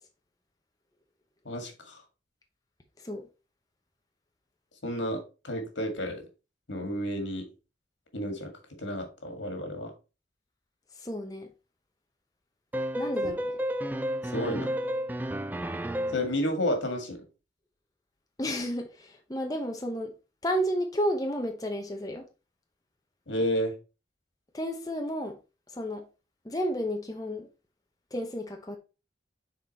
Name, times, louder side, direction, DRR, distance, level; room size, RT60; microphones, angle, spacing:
voice 1, 1.5-2.0 4.8-6.2 6.7-7.4 8.1-8.5 8.8-9.9 14.3-14.7 16.1-17.2 23.3-23.7, equal, 90° left, 2.0 m, -31 dB
voice 2, 11.0-11.5 12.9-13.5 18.4-20.1 20.4-22.3 24.5-25.4 25.7-26.0 26.4-27.5 28.1-28.8, equal, 20° left, 0.8 m, -31 dB
sound 1, 12.7-16.4, equal, 10° right, 0.3 m, -31 dB
6.8 x 4.0 x 4.1 m
head